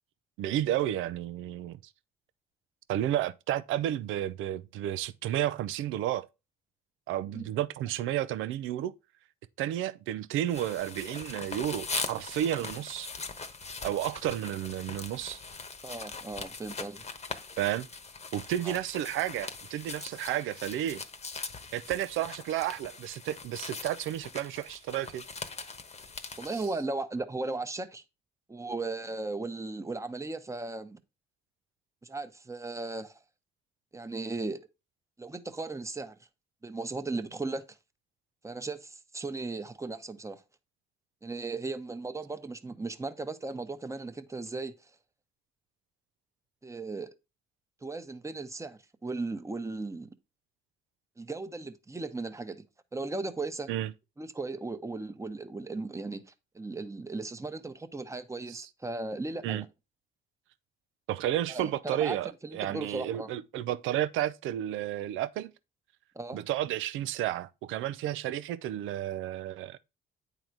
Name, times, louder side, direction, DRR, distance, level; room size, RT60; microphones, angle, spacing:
voice 1, 0.4-1.8 2.9-6.3 7.1-8.9 9.6-13.1 13.8-15.4 17.6-17.9 18.3-21.0 21.7-25.2 26.5-26.6 53.7-53.9 58.5-58.7 59.4-59.7 61.1-65.5 66.3-69.8, right 12 dB, 90° right, 0.5 m, -32 dB
sound 1, 10.5-26.7, left 4 dB, 35° left, 1.1 m, -41 dB
voice 2, 15.8-17.0 18.6-18.8 26.4-28.0 28.5-31.0 32.0-33.2 33.9-34.6 35.2-36.2 36.6-37.6 38.4-40.4 41.2-44.7 46.6-47.1 47.8-50.1 51.2-52.6 52.9-53.7 54.2-56.2 56.5-59.7 61.5-62.2 62.4-63.3 66.1-66.4, right 3 dB, 15° right, 0.9 m, -36 dB
9.1 x 4.0 x 4.6 m
cardioid pair, 90°, 20 cm